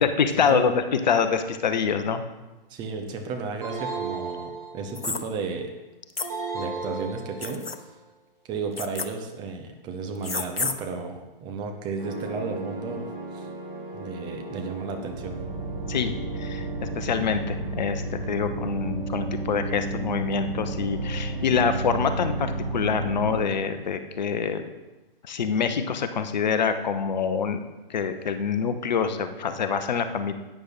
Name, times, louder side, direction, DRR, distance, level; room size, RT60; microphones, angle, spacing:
voice 1, 0.0-2.2 15.9-16.1 16.4-16.7 17.0-24.6 25.2-27.6 27.9-30.3, left 6 dB, 50° left, 9 dB, 0.9 m, -25 dB
voice 2, 2.7-5.7 6.5-7.9 8.5-13.5 13.9-15.4, right 4 dB, 15° right, 4 dB, 0.8 m, -33 dB
sound 1, 3.6-5.2 6.2-7.8, right 4 dB, 40° right, 4.4 m, -34 dB
sound 2, 5.0-5.2 6.2-6.3 7.4-7.8 8.8-9.1 10.2-10.8, left 4 dB, 85° left, 0.9 m, -29 dB
sound 3, 12.0-23.4, right 2 dB, 55° right, 4.2 m, -32 dB
11.5 x 9.0 x 4.2 m, 1.1 s
figure-of-eight pair, 125°, 29 cm